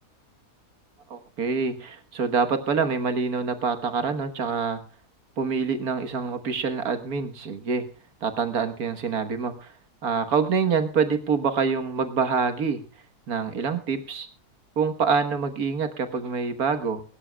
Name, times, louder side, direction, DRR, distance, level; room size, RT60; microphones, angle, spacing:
voice 1, 1.1-4.8 5.4-7.8 8.2-9.7 10.0-12.8 13.3-14.3 14.8-17.0, right 5 dB, 70° right, 8 dB, 1.7 m, -26 dB
22.0 x 12.5 x 2.2 m, 0.37 s
omnidirectional pair, 1.6 m